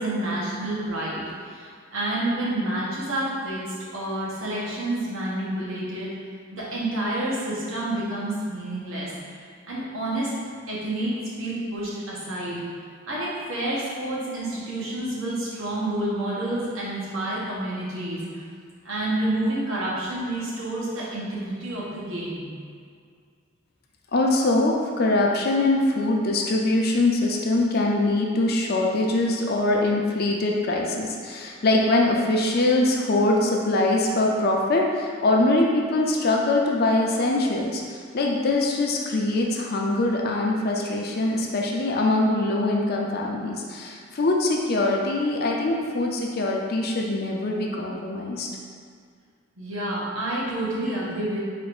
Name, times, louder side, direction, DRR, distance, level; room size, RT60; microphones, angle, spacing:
voice 1, 0.0-3.6 3.9-6.1 6.5-9.1 9.7-10.3 10.7-11.1 11.4-12.6 13.1-18.4 18.8-22.5 49.6-51.4, right 1 dB, 85° right, -6 dB, 1.3 m, -29 dB
voice 2, 24.1-48.5, left 2 dB, 50° left, -1 dB, 0.6 m, -23 dB
4.1 x 2.6 x 4.8 m, 2.1 s
head